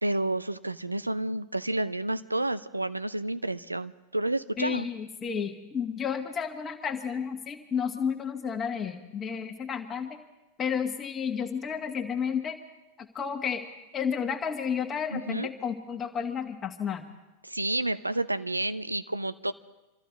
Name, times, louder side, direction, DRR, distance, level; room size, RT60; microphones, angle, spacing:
voice 1, 0.0-4.9 15.1-15.5 17.4-19.5, right 1 dB, 85° right, 13 dB, 0.6 m, -30 dB
voice 2, 4.6-10.2 10.6-12.6 13.0-13.6 13.9-17.1, left 7 dB, 25° left, 3 dB, 1.5 m, -31 dB
26.0 x 14.0 x 4.0 m, 1.0 s
figure-of-eight pair, 90°, 0 cm